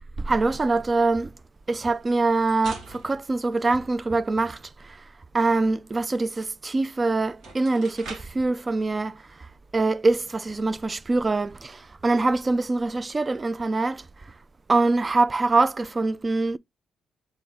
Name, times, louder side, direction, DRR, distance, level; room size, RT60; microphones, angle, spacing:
voice 1, 0.2-1.3 1.7-5.1 5.3-14.3 14.7-16.6, right 3 dB, 25° right, 0.3 m, -24 dB
sound 1, 1.9-4.3 6.7-6.8 7.3-8.5, right 3 dB, 65° right, 2.2 m, -44 dB
3.9 x 3.7 x 3.4 m
cardioid pair, 90°, 0 cm